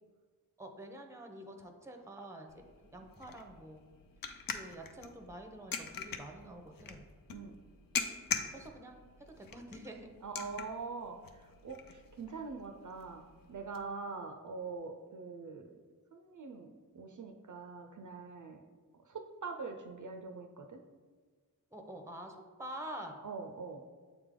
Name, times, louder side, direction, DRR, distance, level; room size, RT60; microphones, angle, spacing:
voice 1, 0.6-2.5 2.9-3.8 4.5-7.1 8.5-10.1 21.7-23.2, right 1 dB, 10° right, 4 dB, 0.7 m, -47 dB
sound 1, 2.5-13.8, left 6 dB, 65° left, 0.6 m, -43 dB
voice 2, 10.2-13.2 13.5-15.7 16.1-18.6 19.1-20.8 23.2-23.8, right 4 dB, 55° right, 5 dB, 0.5 m, -43 dB
7.6 x 3.4 x 3.7 m, 1.5 s
wide cardioid pair, 70°, 37 cm